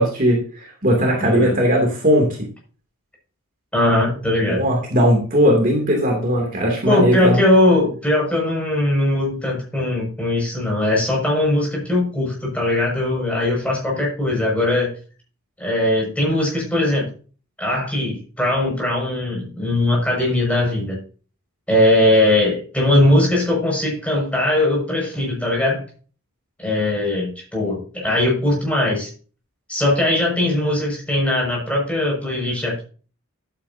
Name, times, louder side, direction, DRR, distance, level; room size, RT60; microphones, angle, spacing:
voice 1, 0.0-2.3 4.5-7.4, equal, 40° right, 0 dB, 2.8 m, -18 dB
voice 2, 1.2-1.5 3.7-4.6 6.9-15.0 15.6-17.1 17.6-21.0 21.7-25.8 26.6-29.1 29.7-32.8, left 1 dB, 5° left, -2 dB, 6.2 m, -20 dB
12.5 x 9.5 x 2.8 m, 0.37 s
head